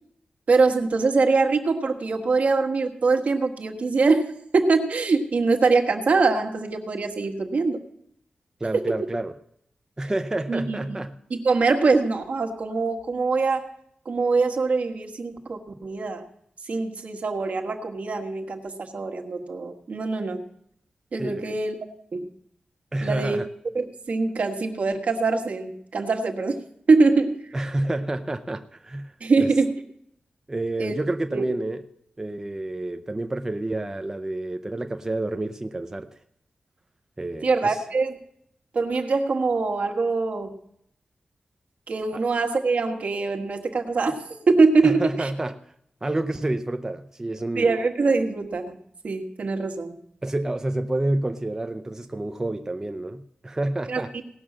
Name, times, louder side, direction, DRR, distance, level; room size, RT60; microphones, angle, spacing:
voice 1, 0.5-7.8 8.7-8.9 10.5-11.0 11.3-13.7 14.0-16.3 16.7-20.4 21.1-21.8 22.1-22.3 23.0-23.4 23.7-26.6 26.9-27.4 29.2-29.8 30.8-30.9 31.3-31.4 37.4-38.2 38.7-40.5 41.9-45.3 47.5-48.8 49.0-50.0 53.9-54.0, right 4 dB, 60° right, 4 dB, 1.5 m, -23 dB
voice 2, 8.6-9.3 10.0-11.1 21.2-21.6 22.9-23.5 27.5-29.5 30.5-31.8 32.2-36.2 37.2-37.8 44.8-45.7 46.0-47.7 50.2-54.1, right 2 dB, 20° right, 7 dB, 0.5 m, -29 dB
18.0 x 6.3 x 7.3 m, 0.71 s
wide cardioid pair, 145°, 3 cm